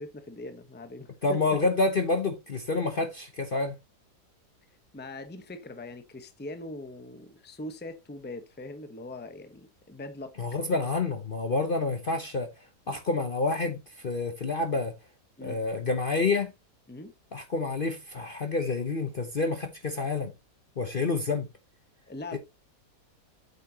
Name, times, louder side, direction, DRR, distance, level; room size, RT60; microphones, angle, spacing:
voice 1, 0.0-1.4 4.9-10.4 15.4-15.6 16.9-17.1 22.1-22.4, left 2 dB, 10° left, 0.8 m, -41 dB
voice 2, 1.2-3.8 10.4-12.5 12.9-14.9 15.4-16.5 17.3-20.3 20.8-21.5 22.3-22.4, left 3 dB, 40° left, 0.9 m, -28 dB
8.6 x 6.7 x 2.8 m
omnidirectional pair, 1.8 m